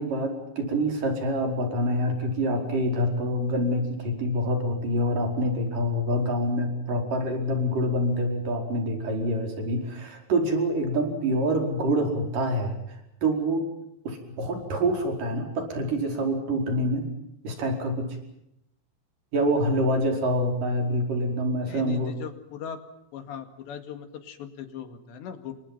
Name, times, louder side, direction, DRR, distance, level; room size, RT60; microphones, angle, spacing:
voice 1, 0.0-13.7 14.0-17.1 17.4-18.1 19.3-22.1, equal, 45° right, 4 dB, 6.2 m, -26 dB
voice 2, 21.7-22.8 23.1-25.5, left 8 dB, 70° left, 8 dB, 4.2 m, -39 dB
29.5 x 25.5 x 5.7 m, 0.81 s
omnidirectional pair, 5.5 m